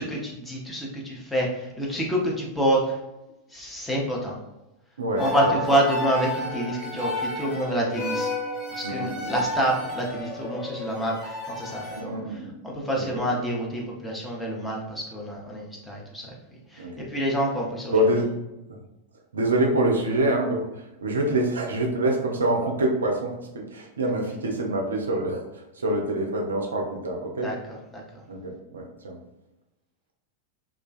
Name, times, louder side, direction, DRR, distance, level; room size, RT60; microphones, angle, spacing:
voice 1, 0.0-3.0 3.5-4.4 5.2-8.3 8.7-12.2 12.6-16.4 16.7-17.9 27.4-28.2, right 1 dB, 5° left, -3 dB, 0.6 m, -27 dB
voice 2, 5.0-5.5 8.8-9.3 11.9-12.5 12.9-13.1 16.8-17.1 17.9-18.4 18.7-18.8 19.3-20.6 21.0-27.5 28.3-29.2, right 1 dB, 70° right, 1 dB, 0.4 m, -26 dB
sound 1, 5.2-12.0, left 1 dB, 40° left, 0.8 m, -31 dB
2.4 x 2.2 x 2.3 m, 0.95 s
figure-of-eight pair, 90°, 0 cm